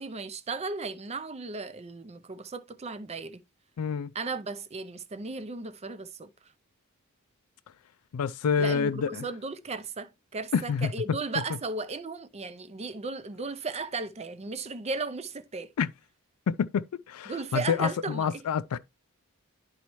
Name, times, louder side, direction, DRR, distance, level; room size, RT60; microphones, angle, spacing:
voice 1, 0.0-3.4 4.1-6.3 8.6-15.7 17.3-18.4, right 3 dB, 30° right, 0.5 m, -35 dB
voice 2, 3.8-4.1 8.1-9.2 10.5-11.2 15.8-15.9 16.5-18.8, left 6 dB, 75° left, 0.4 m, -28 dB
11.0 x 4.2 x 3.1 m
head